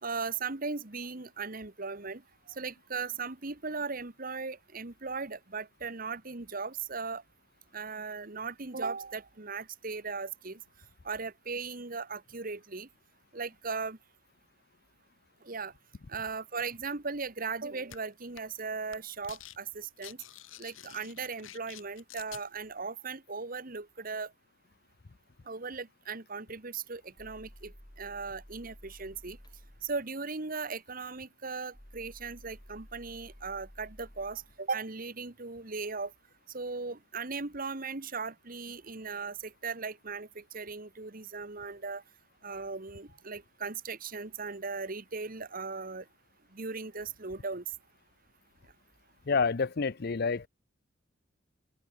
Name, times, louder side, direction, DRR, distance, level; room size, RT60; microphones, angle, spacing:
voice 1, 0.0-2.2 2.5-7.2 7.7-10.6 11.0-12.9 13.3-14.0 15.4-15.7 16.1-20.2 20.6-24.3 25.5-29.4 29.8-36.1 36.5-42.0 42.4-46.0 46.5-47.6, right 4 dB, 45° right, 1.5 m, -38 dB
sound 1, 17.9-18.0 18.4-18.6 18.9-19.6 19.8-22.4, left 11 dB, 85° left, 1.6 m, -48 dB
sound 2, 26.6-30.0 31.7-35.9, equal, 20° left, 3.0 m, -54 dB
voice 2, 49.3-50.5, left 4 dB, 50° left, 0.6 m, -28 dB
open air
head